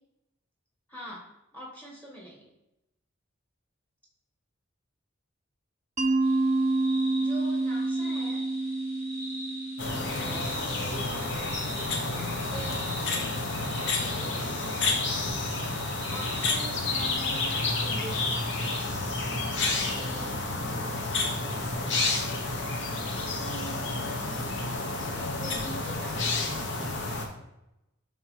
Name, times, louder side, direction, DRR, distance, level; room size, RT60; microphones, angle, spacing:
voice 1, 0.9-2.4 7.1-8.5 10.2-10.6 10.9-11.4 12.4-15.0 16.1-18.4 19.8-21.6 23.1-24.6 25.1-26.3, equal, 10° left, -3 dB, 1.2 m, -44 dB
Mallet percussion, 6.0-10.7, right 2 dB, 35° right, 0.6 m, -28 dB
sound 1, 6.2-17.4, equal, 30° left, 1.9 m, -42 dB
sound 2, 9.8-27.3, left 3 dB, 60° left, 0.9 m, -30 dB
9.6 x 3.6 x 3.1 m, 0.90 s
head